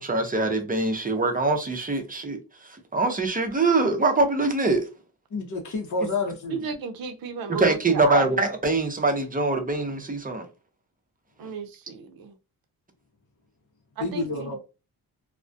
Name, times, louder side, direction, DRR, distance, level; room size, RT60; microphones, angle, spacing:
voice 1, 0.0-2.4 2.9-4.8 7.5-10.5, right 3 dB, 20° right, 0.6 m, -23 dB
voice 2, 5.3-6.6 14.0-14.6, left 3 dB, 50° left, 0.7 m, -29 dB
voice 3, 6.5-8.4 11.4-12.3 14.0-14.6, right 6 dB, 65° right, 0.6 m, -33 dB
2.3 x 2.1 x 2.5 m
cardioid pair, 75°, 38 cm